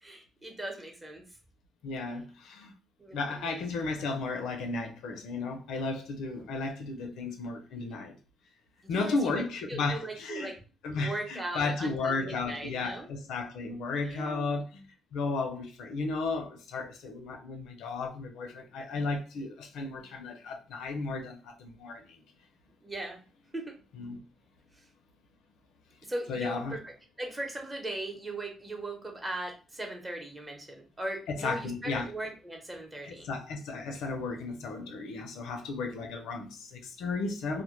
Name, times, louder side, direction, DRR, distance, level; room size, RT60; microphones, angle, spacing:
voice 1, 0.0-1.3 3.0-3.6 8.8-10.6 11.0-13.1 14.0-14.6 22.8-23.2 23.5-23.8 26.0-33.3, right 1 dB, 20° right, 0.7 m, -39 dB
voice 2, 1.8-2.7 3.1-8.2 8.9-10.5 10.8-22.2 24.0-24.2 26.3-26.8 31.4-32.1 33.0-37.6, left 3 dB, 85° left, 0.4 m, -34 dB
2.1 x 2.1 x 2.9 m
cardioid pair, 90°, 0 cm